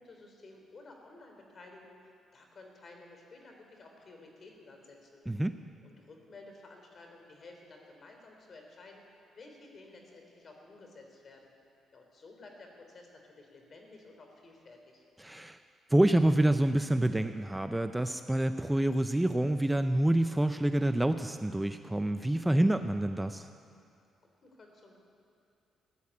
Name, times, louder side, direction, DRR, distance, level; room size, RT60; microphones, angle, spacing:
voice 1, 0.0-5.2 5.8-9.0 9.3-11.5 11.9-15.0 24.2-25.0, left 2 dB, 45° left, 2 dB, 3.4 m, -53 dB
voice 2, 15.2-15.6 15.9-23.5, right 1 dB, 10° right, 9 dB, 0.5 m, -27 dB
16.5 x 10.0 x 8.5 m, 2.5 s
cardioid pair, 90°, 0 cm